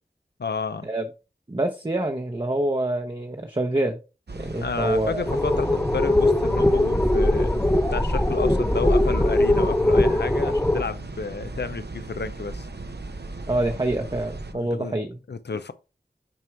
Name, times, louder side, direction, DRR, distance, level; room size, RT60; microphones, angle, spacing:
voice 1, 0.4-0.9 4.4-7.6 7.9-12.7 14.5-15.0 15.3-15.7, left 4 dB, 90° left, 0.5 m, -31 dB
voice 2, 1.5-4.0 4.3-5.2 13.5-15.2, right 1 dB, 30° right, 0.7 m, -26 dB
sound 1, 4.3-14.5, right 2 dB, 75° right, 0.7 m, -37 dB
sound 2, 5.3-10.8, left 1 dB, 10° left, 0.4 m, -21 dB
6.2 x 4.5 x 3.5 m
wide cardioid pair, 40°, 17 cm